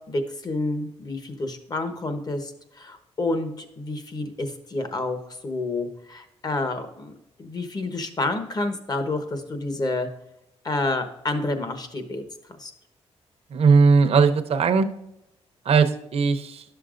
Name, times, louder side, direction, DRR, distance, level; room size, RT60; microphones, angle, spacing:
voice 1, 0.1-5.2 5.4-7.1 7.4-10.1 10.6-12.2 12.6-12.7, left 2 dB, 35° left, 7 dB, 1.1 m, -29 dB
voice 2, 13.5-14.9 15.7-16.6, right 5 dB, 60° right, 7 dB, 0.7 m, -18 dB
11.0 x 6.8 x 2.5 m, 0.82 s
cardioid pair, 90°, 11 cm